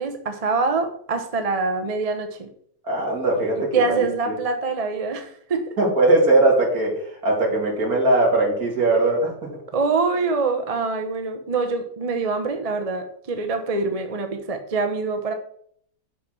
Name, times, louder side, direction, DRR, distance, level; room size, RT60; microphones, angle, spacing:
voice 1, 0.0-2.5 3.5-5.7 9.7-15.3, right 4 dB, 35° right, 5 dB, 0.6 m, -25 dB
voice 2, 2.8-3.9 4.3-4.4 5.8-6.9 7.2-9.3, right 2 dB, 60° right, -3 dB, 2.9 m, -19 dB
6.0 x 5.9 x 6.0 m, 0.63 s
omnidirectional pair, 1.8 m